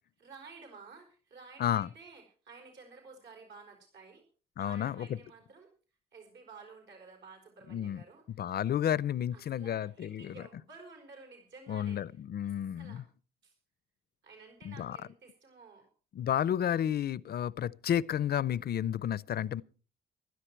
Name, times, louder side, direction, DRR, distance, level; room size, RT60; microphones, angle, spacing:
voice 1, 0.2-4.2 4.6-5.7 6.1-8.5 9.3-12.0 12.4-13.0 13.4-13.5 14.2-15.9, right 4 dB, 70° right, 4.8 m, -53 dB
voice 2, 4.6-5.2 7.7-8.0 8.4-10.4 11.7-13.0 14.6-15.0 16.1-19.6, left 10 dB, 55° left, 0.6 m, -31 dB
15.5 x 13.0 x 4.5 m
cardioid pair, 90°, 20 cm